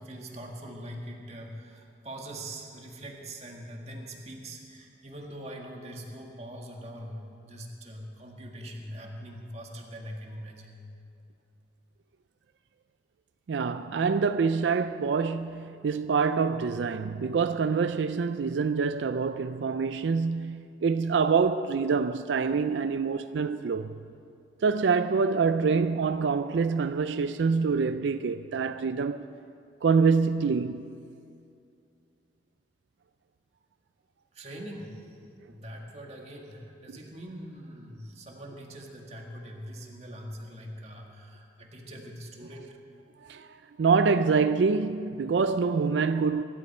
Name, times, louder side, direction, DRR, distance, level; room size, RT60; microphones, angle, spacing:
voice 1, 0.0-10.8 34.3-35.1 35.5-42.8, right 1 dB, 35° right, 1.9 m, -42 dB
voice 2, 13.5-23.9 24.6-29.2 29.8-30.9 36.9-37.0 43.2-43.5 43.8-46.4, right 5 dB, 90° right, 0.4 m, -26 dB
23.5 x 12.5 x 4.4 m
head